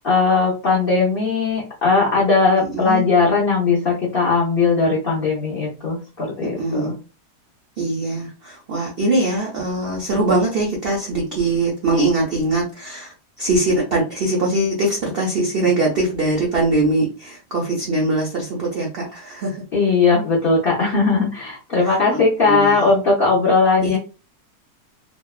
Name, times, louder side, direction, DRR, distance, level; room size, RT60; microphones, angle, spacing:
voice 1, 0.0-6.9 19.7-24.0, left 4 dB, 70° left, -5 dB, 0.5 m, -18 dB
voice 2, 2.6-3.1 6.4-6.9 7.8-19.6 21.8-22.8 23.8-24.0, right 2 dB, 75° right, -2 dB, 0.5 m, -22 dB
2.8 x 2.1 x 2.3 m, 0.33 s
omnidirectional pair, 1.8 m